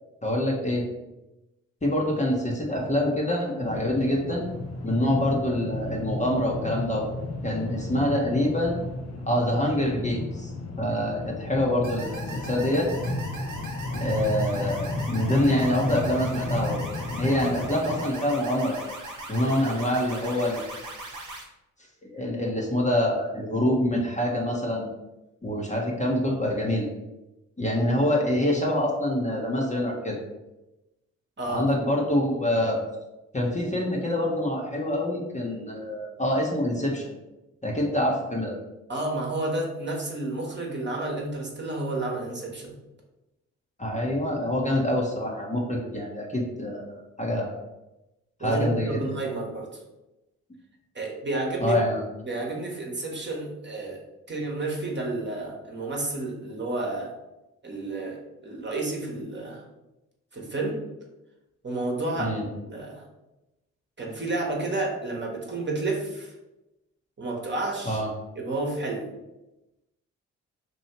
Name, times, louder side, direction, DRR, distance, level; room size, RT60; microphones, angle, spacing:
voice 1, 0.2-0.8 1.8-4.4 4.8-7.1 7.4-8.8 9.3-10.5 10.8-12.9 14.0-16.8 17.2-18.8 19.3-20.8 22.0-24.9 25.4-26.9 27.6-30.2 31.5-32.8 33.3-37.1 37.6-38.6 43.8-47.5 48.4-49.0 51.6-52.0 62.2-62.5 67.8-68.1, left 1 dB, 20° left, -2 dB, 1.0 m, -26 dB
sound 1, 3.6-18.0, left 2 dB, 40° left, 0.7 m, -33 dB
sound 2, 11.8-21.4, right 1 dB, 50° right, 1.1 m, -39 dB
voice 2, 38.9-42.7 48.4-49.7 50.9-51.8 52.2-54.0 54.3-57.1 57.6-59.6 60.3-60.8 61.6-63.0 64.0-66.3 67.2-68.0 68.3-69.1, right 2 dB, 30° right, -1 dB, 1.2 m, -31 dB
3.0 x 2.7 x 4.4 m, 0.98 s
hypercardioid pair, 40°, 37 cm